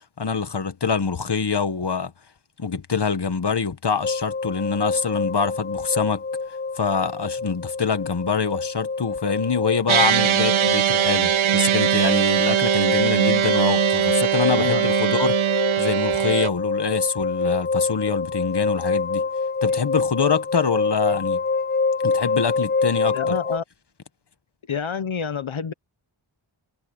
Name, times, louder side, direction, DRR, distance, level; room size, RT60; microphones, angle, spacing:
voice 1, 0.2-2.1 2.6-6.2 6.8-19.2 19.6-21.4 22.0-23.4, left 5 dB, 55° left, 1.4 m, -25 dB
sound 1, 4.0-23.6, left 4 dB, 25° left, 0.4 m, -26 dB
sound 2, 9.9-16.5, right 10 dB, 80° right, 0.6 m, -21 dB
voice 2, 23.1-23.6 24.7-25.7, left 7 dB, 80° left, 1.0 m, -28 dB
wide cardioid pair, 65°, 47 cm